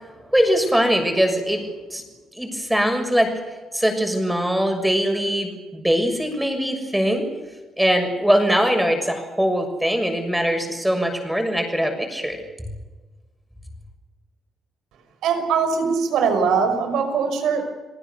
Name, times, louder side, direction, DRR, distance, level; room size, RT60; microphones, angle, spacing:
voice 1, 0.3-1.6 1.9-2.0 2.3-3.3 3.7-7.3 7.8-12.4, equal, 5° right, 5 dB, 6.7 m, -21 dB
voice 2, 15.2-17.6, right 6 dB, 80° right, 6 dB, 5.8 m, -21 dB
30.0 x 19.0 x 6.9 m, 1.3 s
cardioid pair, 90°, 0 cm